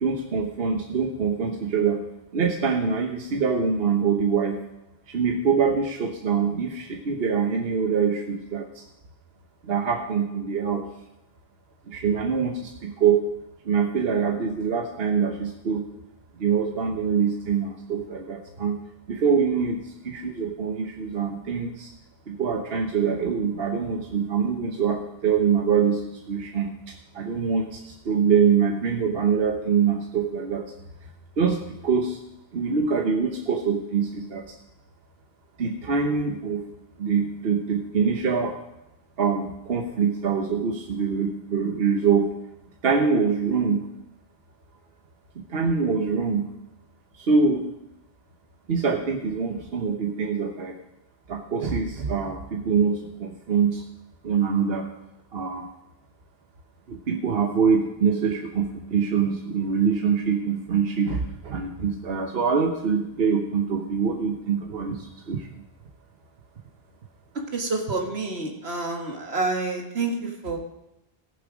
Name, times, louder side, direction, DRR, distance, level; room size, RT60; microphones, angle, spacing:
voice 1, 0.0-2.0 2.3-4.6 5.1-8.8 9.6-10.8 11.9-13.2 13.6-15.9 16.4-18.8 19.1-21.9 22.3-30.6 31.4-32.2 32.5-34.5 35.6-36.6 37.0-38.5 39.2-42.3 42.8-43.9 45.5-46.5 47.1-47.6 48.7-50.7 51.3-53.8 54.2-54.9 55.3-55.7 56.9-65.5, right 6 dB, 70° right, 2 dB, 1.2 m, -24 dB
voice 2, 67.4-70.6, right 3 dB, 85° right, 2 dB, 2.0 m, -28 dB
18.0 x 6.9 x 5.0 m, 0.91 s
omnidirectional pair, 1.0 m